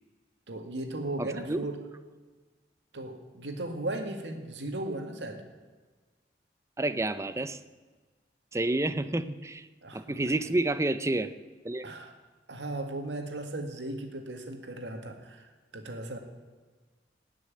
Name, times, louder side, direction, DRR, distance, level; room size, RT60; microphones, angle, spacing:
voice 1, 0.5-1.8 2.9-5.4 9.8-10.2 11.8-12.1 12.5-16.2, right 2 dB, 85° right, 4 dB, 1.9 m, -36 dB
voice 2, 1.2-1.6 6.8-7.6 8.5-9.7 9.9-11.3 11.6-11.9, right 2 dB, 15° right, 12 dB, 0.5 m, -29 dB
17.5 x 6.3 x 9.2 m, 1.4 s
head